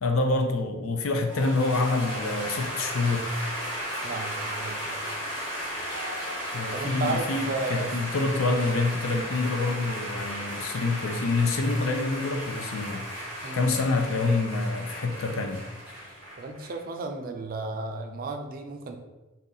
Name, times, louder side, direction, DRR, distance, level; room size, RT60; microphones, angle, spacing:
voice 1, 0.0-3.3 6.5-13.0 13.5-15.6, left 3 dB, 80° left, 5 dB, 0.5 m, -27 dB
sound 1, 1.3-16.8, equal, 20° left, 1.0 m, -35 dB
voice 2, 4.0-5.0 6.7-7.9 13.4-13.7 16.4-19.0, right 3 dB, 45° right, 4 dB, 0.4 m, -33 dB
2.7 x 2.7 x 3.9 m, 1.1 s
head